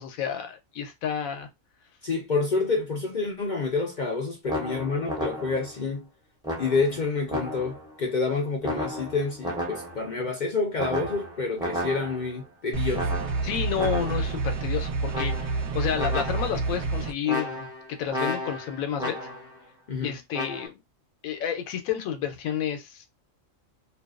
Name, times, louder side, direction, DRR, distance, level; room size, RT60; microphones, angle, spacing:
voice 1, 0.0-1.5 13.4-15.4 15.7-19.2 20.0-20.8 21.2-23.1, left 9 dB, 85° left, 1.0 m, -30 dB
voice 2, 2.0-6.1 6.6-13.1 19.9-20.2, left 4 dB, 60° left, 0.5 m, -28 dB
sound 1, 4.5-5.8 6.4-7.9 8.6-10.1 10.8-12.4 12.9-14.4 15.1-15.7 15.9-16.7 17.2-19.6 20.3-20.7, equal, 5° right, 0.5 m, -33 dB
sound 2, 12.7-17.1, right 3 dB, 65° right, 0.9 m, -28 dB
2.5 x 2.3 x 2.3 m
omnidirectional pair, 1.4 m